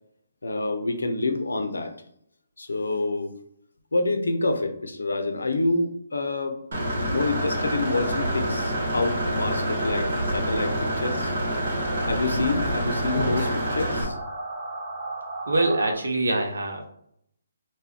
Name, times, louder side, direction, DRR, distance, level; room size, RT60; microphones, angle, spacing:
voice 1, 0.4-1.9 2.6-3.3 3.9-6.6 7.1-11.3 12.1-14.2, left 2 dB, 85° left, 6 dB, 0.5 m, -27 dB
Engine / Mechanisms, 6.7-14.0, right 1 dB, 65° right, 1.0 m, -27 dB
sound 1, 7.2-15.9, right 1 dB, 25° right, 0.9 m, -35 dB
voice 2, 15.5-16.9, right 2 dB, 80° right, 2 dB, 0.6 m, -24 dB
2.2 x 2.2 x 3.5 m, 0.70 s
hypercardioid pair, 150°, 0 cm